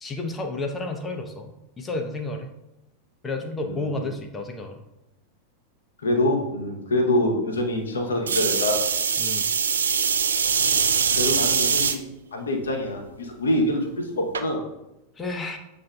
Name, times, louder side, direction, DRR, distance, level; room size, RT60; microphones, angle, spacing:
voice 1, 0.0-2.5 3.2-4.7 9.2-9.5 15.2-15.6, left 2 dB, 15° left, 4 dB, 0.6 m, -31 dB
voice 2, 3.6-4.1 6.0-8.8 11.2-14.6, left 1 dB, 70° left, 2 dB, 0.8 m, -25 dB
sound 1, 8.3-12.0 12.6-13.1 14.3-14.4, right 6 dB, 70° right, 0.4 m, -22 dB
7.3 x 2.6 x 2.2 m, 0.94 s
figure-of-eight pair, 90°, 0 cm